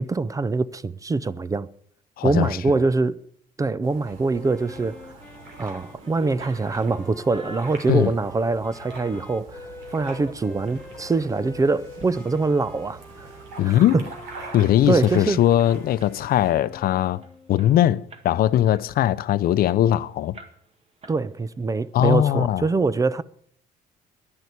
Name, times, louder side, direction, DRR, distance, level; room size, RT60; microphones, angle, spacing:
voice 1, 0.0-1.7 2.2-3.2 3.6-5.0 5.6-13.3 13.6-14.0 14.4-14.5 14.9-15.4 21.1-23.2, right 3 dB, 20° right, 0.5 m, -24 dB
voice 2, 2.2-2.6 7.9-8.1 13.6-14.0 14.5-17.2 17.5-20.4 21.9-22.6, left 12 dB, 60° left, 0.6 m, -20 dB
sound 1, 3.8-16.5, right 4 dB, 90° right, 3.3 m, -44 dB
Wind instrument woodwind instrument, 4.3-17.7, left 3 dB, 10° left, 1.3 m, -45 dB
sound 2, 4.9-5.4 5.8-9.4 9.9-10.8 11.3-11.4 11.8-12.1 12.4-12.5 12.8-15.1 15.4-15.6 16.0-16.4 16.9-17.0 17.2-18.4 18.7-19.9 20.3-20.8 21.0-21.7, right 3 dB, 35° right, 1.8 m, -46 dB
11.0 x 10.5 x 8.3 m
cardioid pair, 110°, 17 cm